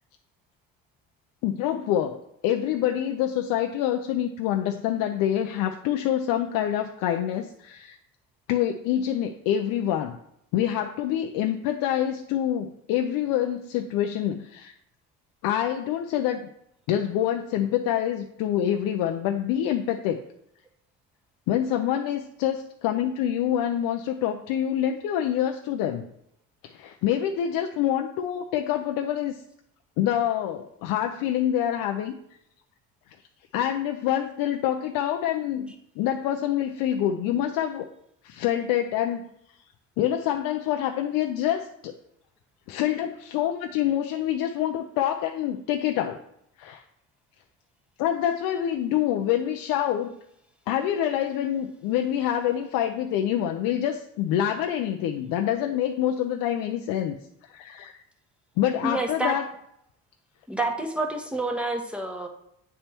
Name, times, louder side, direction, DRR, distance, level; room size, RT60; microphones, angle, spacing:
voice 1, 1.4-2.2 2.4-8.0 8.5-10.2 10.5-14.7 15.4-16.5 16.9-20.2 21.5-26.1 26.6-29.4 30.0-32.2 33.5-37.9 38.2-39.3 40.0-41.9 42.7-46.2 46.6-46.8 48.0-50.1 50.7-57.2 57.4-58.0 58.6-59.4, left 11 dB, 85° left, 5 dB, 0.5 m, -26 dB
voice 2, 58.8-59.4 60.5-62.3, right 2 dB, 5° right, 3 dB, 1.1 m, -28 dB
8.5 x 3.4 x 4.3 m, 0.76 s
cardioid pair, 90°, 34 cm